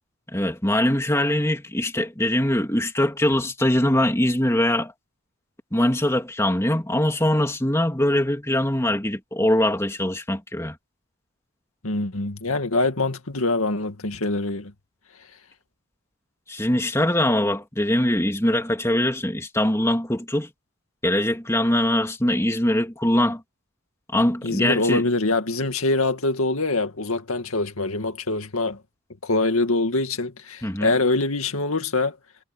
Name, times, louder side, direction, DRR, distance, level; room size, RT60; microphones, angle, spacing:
voice 1, 0.3-4.9 5.7-10.8 16.5-20.5 21.0-23.4 24.1-25.0 30.6-30.9, left 1 dB, 15° left, 2.6 m, -22 dB
voice 2, 11.8-14.7 24.4-28.8 29.2-32.2, left 2 dB, 85° left, 2.2 m, -24 dB
head